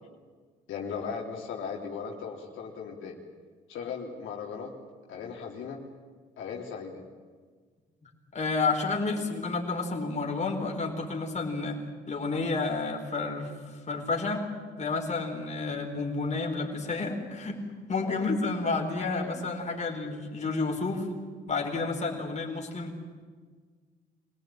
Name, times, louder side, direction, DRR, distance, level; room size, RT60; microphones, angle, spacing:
voice 1, 0.7-3.2 3.7-4.7 5.1-5.8 6.4-7.0 18.0-18.2, left 6 dB, 80° left, -1 dB, 3.4 m, -37 dB
voice 2, 8.0-11.8 12.1-13.6 13.9-14.5 14.8-17.6 17.9-21.1 21.5-22.9, left 3 dB, 35° left, 1 dB, 4.5 m, -30 dB
25.0 x 18.0 x 9.0 m, 1.5 s
cardioid pair, 90°, 20 cm